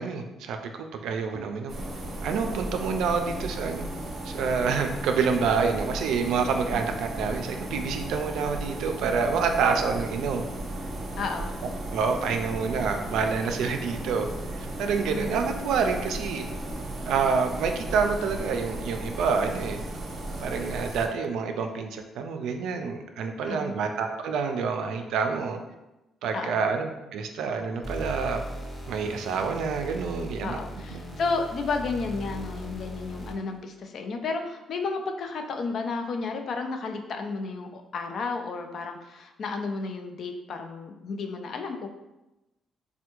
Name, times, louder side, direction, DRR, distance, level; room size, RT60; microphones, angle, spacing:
voice 1, 0.0-1.7 2.2-3.9 4.2-10.4 11.9-14.3 14.5-16.5 17.1-19.8 20.4-25.6 26.2-28.4 28.9-30.6 30.9-31.0, right 5 dB, 85° right, 5 dB, 0.3 m, -27 dB
technic room scanner ambience, 1.7-21.1, right 1 dB, 50° right, 0.6 m, -35 dB
voice 2, 11.2-11.6 15.0-15.4 23.5-23.9 26.3-26.6 30.4-41.9, left 4 dB, 60° left, 5 dB, 0.4 m, -32 dB
sound 1, 27.8-33.6, equal, 30° left, 0.8 m, -39 dB
3.3 x 2.2 x 2.9 m, 0.99 s
cardioid pair, 90°, 0 cm